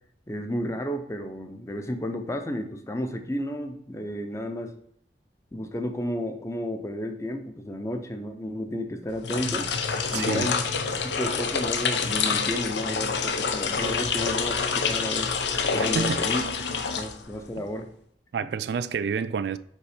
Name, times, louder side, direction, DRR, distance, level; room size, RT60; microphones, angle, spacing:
voice 1, 0.3-4.7 5.5-9.7 10.1-10.7 11.0-15.3 15.7-16.4 16.9-17.9, equal, 15° left, 0.6 m, -32 dB
sound 1, 9.1-17.6, left 5 dB, 85° left, 0.7 m, -27 dB
voice 2, 10.1-10.5 15.8-16.2 18.3-19.6, right 6 dB, 70° right, 0.3 m, -28 dB
5.4 x 4.3 x 5.0 m
head